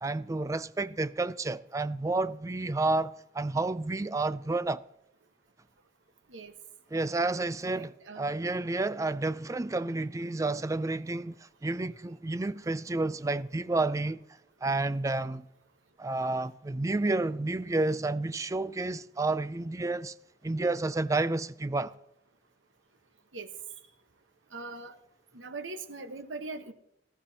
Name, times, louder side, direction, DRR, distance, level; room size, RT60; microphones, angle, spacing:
voice 1, 0.0-4.8 6.9-11.4 11.6-14.2 14.6-15.4 16.0-20.1 20.4-22.0, right 2 dB, 15° right, 0.3 m, -30 dB
voice 2, 7.7-8.3 23.3-23.5 24.5-24.9 25.3-26.7, right 3 dB, 85° right, 1.2 m, -41 dB
18.5 x 13.0 x 2.8 m
head